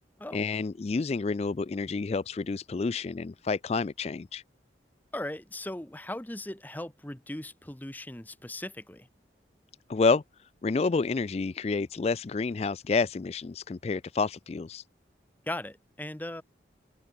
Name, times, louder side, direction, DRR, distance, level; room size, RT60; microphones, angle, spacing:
voice 1, 0.3-4.4 9.9-14.8, left 4 dB, 35° left, 0.3 m, -29 dB
voice 2, 5.1-9.1 15.5-16.4, left 1 dB, 10° left, 0.9 m, -38 dB
head